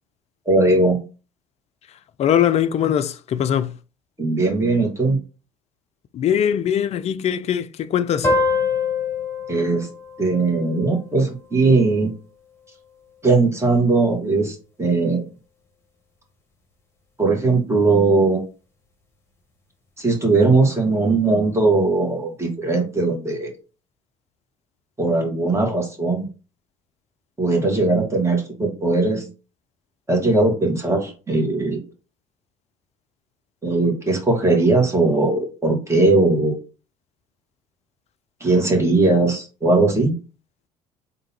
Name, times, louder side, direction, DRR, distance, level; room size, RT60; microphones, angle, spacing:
voice 1, 0.5-1.0 4.2-5.2 9.5-9.9 10.2-12.1 13.2-15.2 17.2-18.4 20.0-23.5 25.0-26.3 27.4-29.3 30.1-31.8 33.6-36.6 38.4-40.1, right 3 dB, 15° right, 1.8 m, -19 dB
voice 2, 2.2-3.7 6.1-8.3, left 9 dB, 40° left, 0.4 m, -21 dB
sound 1, 8.2-11.4, left 4 dB, 15° left, 1.5 m, -25 dB
3.7 x 2.7 x 4.3 m
hypercardioid pair, 60°, 16 cm